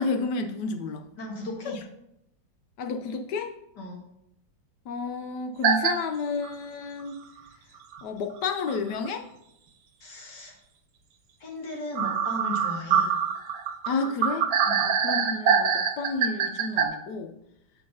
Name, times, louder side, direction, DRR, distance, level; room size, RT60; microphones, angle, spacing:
voice 1, 0.0-1.0 2.8-3.5 4.9-7.2 8.0-9.3 13.9-14.5 14.8-17.3, left 4 dB, 75° left, 6 dB, 1.0 m, -31 dB
voice 2, 1.2-1.8 3.8-4.0 10.0-10.5 11.4-13.1 14.6-14.8, left 1 dB, 55° left, -1 dB, 1.9 m, -36 dB
sound 1, 5.6-5.9 6.4-6.5 7.9-8.0 8.7-8.8 9.1-9.2 12.0-16.9, right 7 dB, 70° right, 1.5 m, -24 dB
7.2 x 4.7 x 5.3 m, 0.83 s
omnidirectional pair, 2.4 m